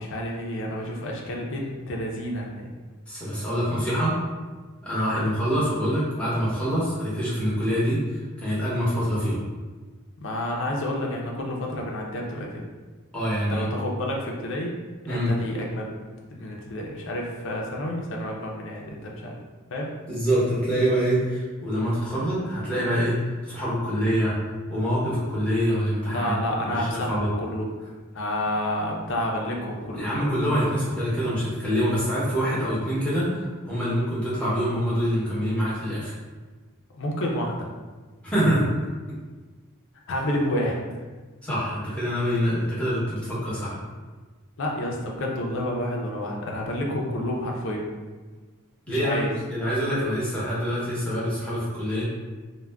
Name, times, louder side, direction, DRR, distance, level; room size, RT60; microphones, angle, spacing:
voice 1, 0.0-2.7 5.1-5.3 10.2-12.7 13.5-14.8 15.0-16.0 16.3-19.4 19.7-19.9 26.1-27.6 28.1-30.1 36.9-37.7 40.1-40.9 44.6-47.9 48.9-49.3, left 1 dB, 60° left, -1 dB, 0.5 m, -29 dB
voice 2, 3.1-4.1 4.8-9.4 13.1-13.7 15.1-15.3 20.0-24.4 24.7-26.3 26.6-27.3 29.9-36.1 38.2-38.7 41.4-43.8 48.9-52.0, equal, 5° left, -10 dB, 0.8 m, -25 dB
2.3 x 2.1 x 3.3 m, 1.3 s
head